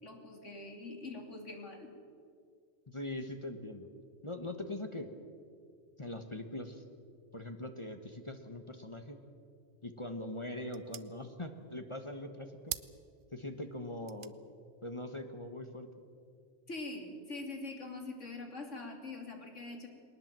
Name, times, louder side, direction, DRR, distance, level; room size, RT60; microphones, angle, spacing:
voice 1, 0.0-1.9 16.7-19.9, left 2 dB, 90° left, 3 dB, 3.3 m, -44 dB
voice 2, 2.9-3.9 4.2-5.1 6.0-6.8 7.3-9.2 9.8-12.5 13.3-14.3 14.8-15.9, left 1 dB, 25° left, 6 dB, 1.3 m, -42 dB
sound 1, 9.7-16.5, right 9 dB, 55° right, 0.8 m, -50 dB
21.0 x 19.5 x 7.6 m, 2.3 s
omnidirectional pair, 1.2 m